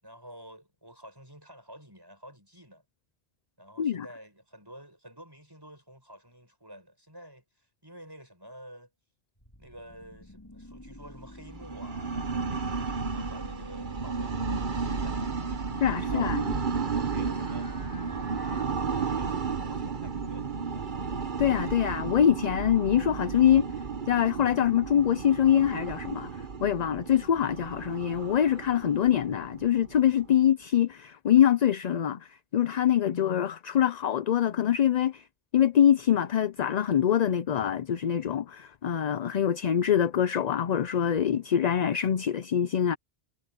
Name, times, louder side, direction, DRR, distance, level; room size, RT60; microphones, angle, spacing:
voice 1, 0.0-2.8 3.6-8.9 9.6-15.2 15.8-16.5 16.9-18.5 19.0-20.9, equal, 20° right, 6.5 m, -50 dB
sound 1, 9.4-18.6, left 1 dB, 20° left, 3.6 m, -48 dB
sound 2, 11.5-30.3, right 5 dB, 50° right, 1.2 m, -33 dB
voice 2, 15.8-16.4 21.4-23.7 24.1-35.3 35.5-43.0, left 9 dB, 50° left, 0.6 m, -24 dB
omnidirectional pair, 1.1 m